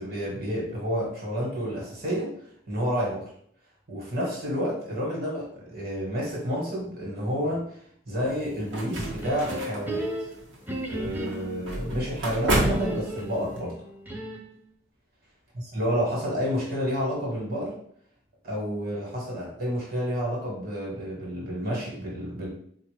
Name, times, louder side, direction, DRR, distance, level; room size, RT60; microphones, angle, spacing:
voice 1, 0.0-2.3 2.7-3.3 3.9-7.6 8.1-10.0 10.9-13.8 15.5-17.7 18.4-22.5, equal, 50° right, -3 dB, 1.2 m, -30 dB
sound 1, 8.3-13.6, right 1 dB, 85° right, 1.0 m, -31 dB
sound 2, 8.9-11.7 12.6-14.6, right 1 dB, 10° right, 0.4 m, -34 dB
4.0 x 2.3 x 3.2 m, 0.63 s
head